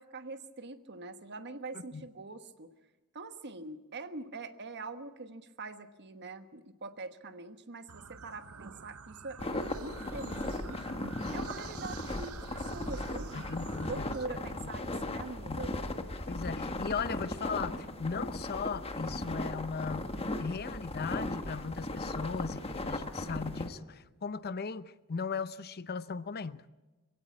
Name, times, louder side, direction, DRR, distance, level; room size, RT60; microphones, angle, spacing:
voice 1, 0.0-2.7 3.1-11.0 11.3-13.3 13.8-15.8, right 3 dB, 50° right, 1.3 m, -43 dB
sound 1, 7.9-14.3, right 6 dB, 70° right, 0.8 m, -48 dB
sound 2, 9.4-23.7, left 1 dB, 25° left, 1.4 m, -37 dB
voice 2, 13.3-14.1 14.6-14.7 15.5-15.6 16.3-20.1 20.4-26.6, left 5 dB, 45° left, 0.6 m, -37 dB
22.0 x 17.0 x 8.6 m
head